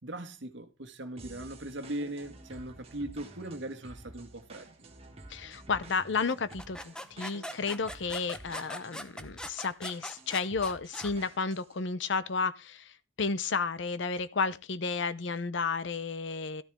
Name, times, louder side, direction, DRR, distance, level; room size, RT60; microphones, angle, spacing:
voice 1, 0.0-4.7, right 1 dB, 70° right, 1.5 m, -39 dB
sound 1, 1.2-11.8, right 2 dB, 30° right, 1.6 m, -51 dB
voice 2, 5.3-16.6, left 4 dB, 65° left, 0.7 m, -32 dB
sound 2, 6.3-11.1, equal, 5° left, 0.7 m, -42 dB
13.0 x 10.0 x 3.5 m
head